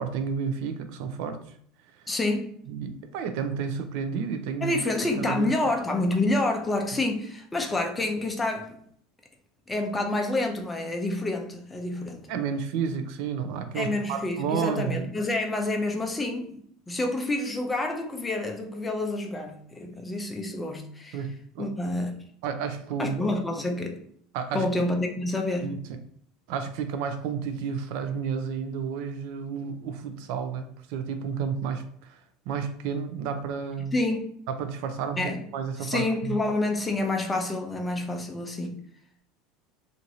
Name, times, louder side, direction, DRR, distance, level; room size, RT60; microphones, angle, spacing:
voice 1, 0.0-1.4 2.7-4.7 5.2-5.7 12.3-15.1 21.1-21.7 22.4-23.1 24.3-24.7 25.6-25.8 26.5-32.2 32.5-33.9 34.5-36.4, right 6 dB, 65° right, 8 dB, 0.4 m, -31 dB
voice 2, 2.1-2.6 4.6-8.8 9.7-12.3 13.7-16.6 16.9-21.2 21.6-22.1 23.0-24.0 24.5-25.8 33.9-34.2 35.2-35.4 35.8-38.8, left 2 dB, 15° left, 3 dB, 0.5 m, -28 dB
2.9 x 2.5 x 2.6 m, 0.63 s
supercardioid pair, 130°, 0 cm